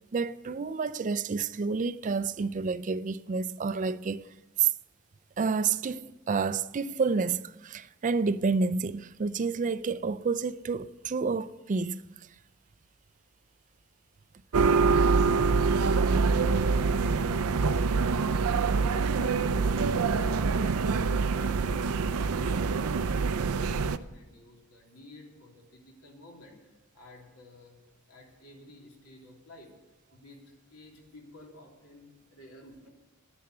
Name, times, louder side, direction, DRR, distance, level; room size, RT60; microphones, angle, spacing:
voice 1, 0.1-4.3 4.6-4.7 5.4-12.3, right 5 dB, 35° right, 0.4 m, -29 dB
sound 1, 14.5-24.0, right 4 dB, 90° right, 0.5 m, -25 dB
voice 2, 17.5-21.0 21.3-26.5 26.9-27.7 28.1-29.7 30.1-32.9, left 1 dB, 90° left, 3.2 m, -53 dB
10.5 x 10.5 x 7.8 m
head